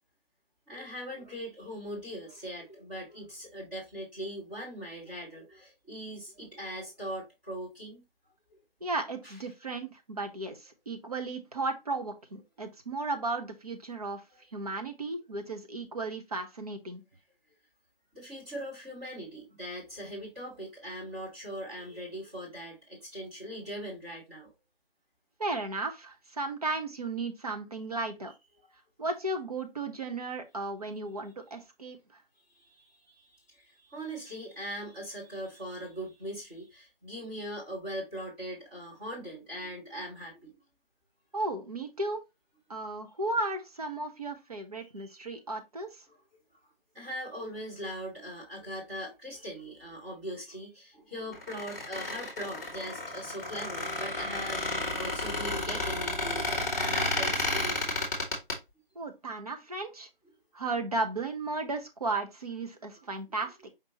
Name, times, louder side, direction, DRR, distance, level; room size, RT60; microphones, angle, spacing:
voice 1, 0.7-8.0 9.2-9.3 18.1-24.5 32.6-32.7 33.1-33.2 33.5-40.6 45.0-45.1 46.9-57.9, equal, 10° right, 1.3 m, -40 dB
voice 2, 8.8-14.2 14.5-17.0 25.4-28.3 29.0-32.0 41.3-42.2 42.7-46.0 58.9-60.1 60.5-63.6, right 2 dB, 40° right, 0.9 m, -35 dB
Squeak, 51.3-58.5, left 2 dB, 20° left, 1.3 m, -32 dB
5.2 x 3.2 x 2.9 m
figure-of-eight pair, 165°, 29 cm